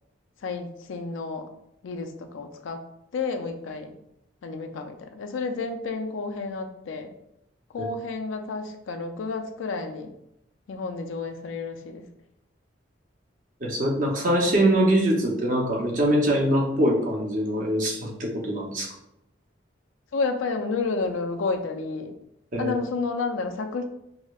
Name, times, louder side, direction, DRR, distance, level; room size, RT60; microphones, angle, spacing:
voice 1, 0.4-1.5 1.8-2.8 3.1-3.9 4.4-7.1 7.7-10.1 10.7-12.1 20.1-22.1 22.6-23.8, left 4 dB, 85° left, 5 dB, 0.4 m, -30 dB
voice 2, 13.6-18.9 22.5-22.7, right 1 dB, 40° right, -1 dB, 0.6 m, -23 dB
4.9 x 2.1 x 2.3 m, 0.79 s
head